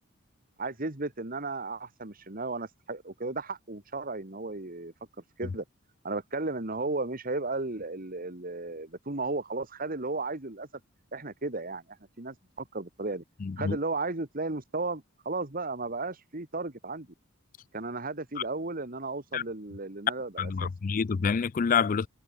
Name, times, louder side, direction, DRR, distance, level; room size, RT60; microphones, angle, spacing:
voice 1, 0.6-4.9 5.4-5.6 6.0-10.7 11.1-11.8 12.2-13.2 13.6-17.1 17.7-20.7, right 3 dB, 45° right, 1.9 m, -34 dB
voice 2, 13.4-13.8 19.3-19.4 20.4-22.1, left 6 dB, 40° left, 0.4 m, -27 dB
head